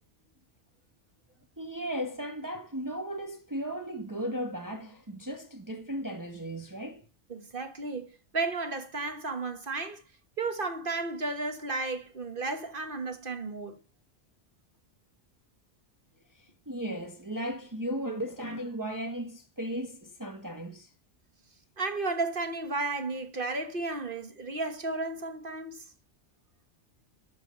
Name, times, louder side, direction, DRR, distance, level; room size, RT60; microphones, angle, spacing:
voice 1, 1.6-7.0 16.3-20.9, equal, 15° right, 1.3 m, -36 dB
voice 2, 7.3-8.1 8.3-10.0 10.4-13.8 21.8-25.8, right 3 dB, 50° right, 1.6 m, -33 dB
13.0 x 6.0 x 6.8 m
omnidirectional pair, 1.2 m